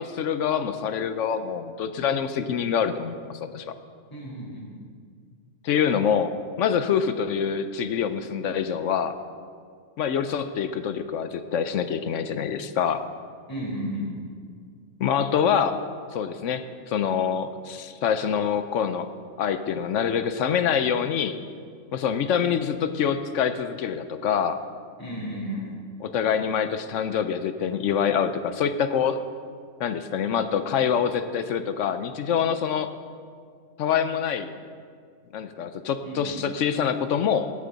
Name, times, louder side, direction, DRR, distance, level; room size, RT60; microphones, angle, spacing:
voice 1, 0.0-3.7 5.6-9.1 10.0-13.0 15.0-15.8 16.1-19.1 19.4-21.4 21.9-24.6 26.0-29.2 29.8-32.9 33.8-34.5 35.3-37.5, left 7 dB, 65° left, 10 dB, 0.9 m, -25 dB
voice 2, 4.1-4.7 13.5-14.1 25.0-25.7 36.0-36.4, equal, 15° left, -8 dB, 3.2 m, -33 dB
18.0 x 8.5 x 4.0 m, 2.1 s
omnidirectional pair, 1.5 m